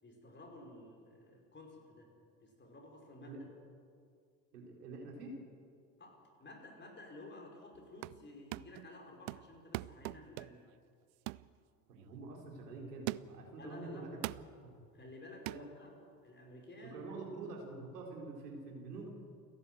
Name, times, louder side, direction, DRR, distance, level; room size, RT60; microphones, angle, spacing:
voice 1, 0.0-2.1 2.4-3.5 6.0-10.6 13.5-14.1 14.9-15.9 16.2-17.0, left 2 dB, 20° left, 1 dB, 5.5 m, -53 dB
voice 2, 4.5-5.3 11.9-14.1 14.6-14.7 15.5-15.6 16.8-19.1, right 3 dB, 70° right, 0 dB, 4.4 m, -46 dB
sound 1, 7.7-8.2 8.5-8.9 9.3-10.7 11.3-11.5 12.0-12.1 13.1-13.5 14.2-14.5 15.5-15.7, right 22 dB, 50° right, 0.5 m, -42 dB
29.0 x 11.0 x 8.0 m, 2.3 s
figure-of-eight pair, 70°, 48 cm